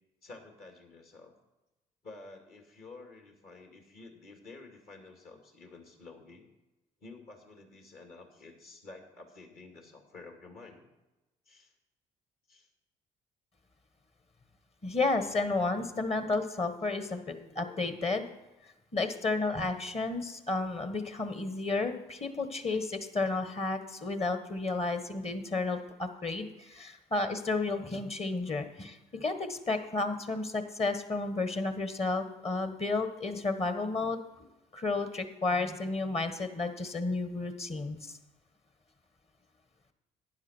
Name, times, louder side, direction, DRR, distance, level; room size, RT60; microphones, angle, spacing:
voice 1, 0.2-1.3 2.0-6.4 7.0-10.8 11.5-11.7 12.5-12.7 26.8-27.0, left 3 dB, 55° left, 3 dB, 2.6 m, -51 dB
voice 2, 14.8-18.2 18.9-34.5 34.7-38.1, left 3 dB, 35° left, 9 dB, 1.5 m, -32 dB
11.5 x 9.9 x 4.5 m, 1.0 s
hypercardioid pair, 50°, 18 cm